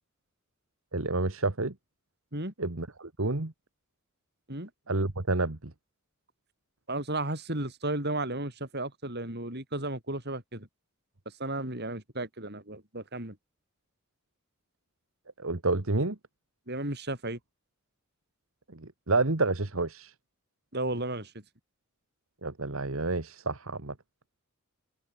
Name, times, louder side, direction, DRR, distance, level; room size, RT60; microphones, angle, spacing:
voice 1, 0.9-1.7 2.6-3.5 4.9-5.7 15.4-16.2 18.7-20.1 22.4-23.9, right 3 dB, 65° right, 1.7 m, -29 dB
voice 2, 6.9-10.7 11.3-13.4 16.7-17.4 20.7-21.3, right 2 dB, 50° right, 7.2 m, -34 dB
head